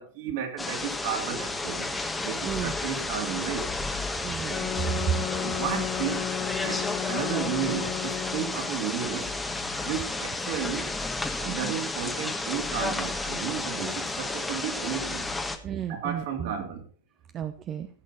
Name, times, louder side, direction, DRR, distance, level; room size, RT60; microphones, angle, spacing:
voice 1, 0.0-3.7 5.4-6.3 6.6-9.3 9.8-10.9 11.4-15.3 15.9-16.9, right 8 dB, 50° right, 3.2 m, -33 dB
sound 1, 0.6-15.6, left 2 dB, 10° left, 1.4 m, -32 dB
voice 2, 2.4-2.8 4.2-4.9 11.4-11.8 15.6-16.5 17.3-17.9, right 9 dB, 30° right, 0.9 m, -34 dB
sound 2, 4.5-8.7, left 12 dB, 35° left, 0.5 m, -34 dB
15.0 x 8.5 x 4.4 m
figure-of-eight pair, 90°, 0 cm